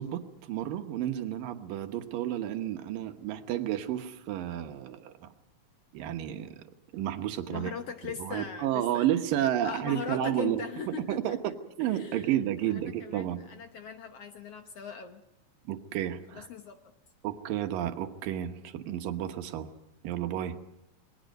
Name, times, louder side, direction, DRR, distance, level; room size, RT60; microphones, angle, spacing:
voice 1, 0.0-5.3 5.9-6.6 6.9-7.7 8.2-13.4 15.7-16.5 17.2-19.7 20.0-20.6, right 11 dB, 80° right, 7 dB, 2.9 m, -31 dB
voice 2, 7.5-9.1 9.6-12.3 12.7-15.2 16.3-16.8, left 7 dB, 65° left, 6 dB, 1.6 m, -40 dB
27.5 x 21.0 x 5.4 m, 0.86 s
omnidirectional pair, 3.9 m